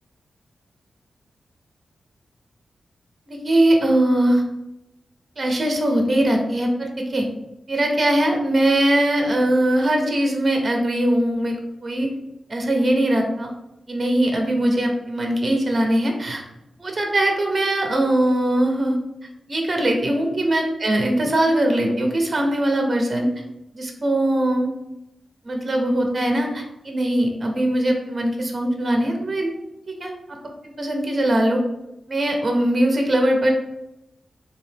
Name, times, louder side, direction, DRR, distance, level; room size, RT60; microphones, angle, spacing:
voice 1, 3.3-4.4 5.4-7.3 7.7-11.6 11.8-12.1 12.5-13.5 13.9-16.4 16.8-19.0 19.5-23.3 23.7-24.7 25.4-29.5 30.0-30.1 30.8-31.6 32.1-33.5, right 1 dB, 30° right, 2 dB, 0.6 m, -21 dB
4.0 x 2.8 x 3.3 m, 0.89 s
wide cardioid pair, 135°, 0 cm